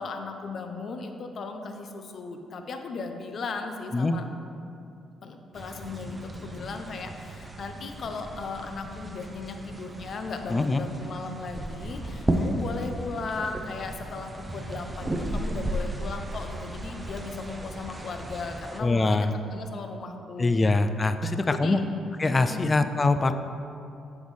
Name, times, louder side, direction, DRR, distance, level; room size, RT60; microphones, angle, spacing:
voice 1, 0.0-4.2 5.2-6.2 6.4-20.7 21.3-21.8 22.5-22.7, left 4 dB, 55° left, 5 dB, 0.6 m, -36 dB
sound 1, 5.5-18.8, right 1 dB, 20° right, 0.6 m, -35 dB
voice 2, 10.5-10.8 18.8-19.3 20.4-21.8 22.2-23.3, left 3 dB, 25° left, 9 dB, 0.3 m, -23 dB
8.1 x 5.4 x 3.2 m, 2.6 s
cardioid pair, 90°, 0 cm